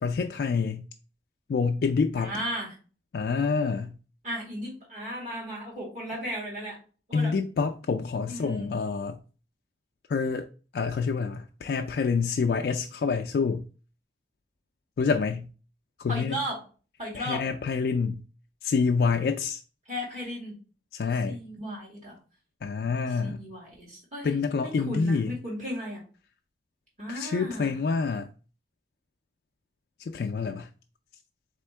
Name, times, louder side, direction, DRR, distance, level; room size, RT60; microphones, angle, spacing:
voice 1, 0.0-0.9 1.5-2.3 3.1-3.9 7.1-9.2 10.1-10.5 10.7-13.6 15.0-15.5 16.0-16.4 17.1-18.2 18.6-19.6 20.9-21.4 22.6-23.4 24.2-25.3 27.1-28.3 30.1-30.7, left 5 dB, 60° left, 0.3 m, -27 dB
voice 2, 2.2-2.8 4.2-6.8 7.1-7.3 8.3-8.7 16.1-16.7 17.0-17.5 19.9-20.6 21.3-22.2 23.1-26.0 27.0-27.8, equal, 45° right, 2.1 m, -35 dB
3.7 x 3.4 x 3.2 m
head